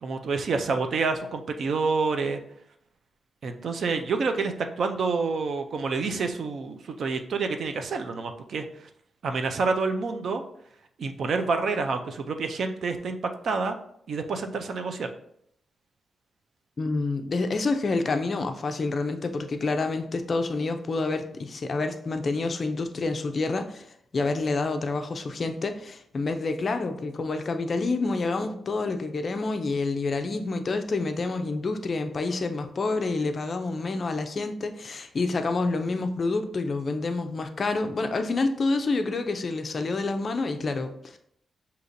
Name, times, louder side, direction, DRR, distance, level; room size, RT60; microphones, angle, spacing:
voice 1, 0.0-2.4 3.4-8.9 9.2-10.4 11.0-13.2 13.4-13.8 14.1-15.1, right 4 dB, 55° right, 6 dB, 0.4 m, -28 dB
voice 2, 16.8-23.9 24.1-41.2, left 3 dB, 35° left, 7 dB, 0.4 m, -28 dB
6.4 x 2.8 x 2.6 m, 0.70 s
wide cardioid pair, 150°, 0 cm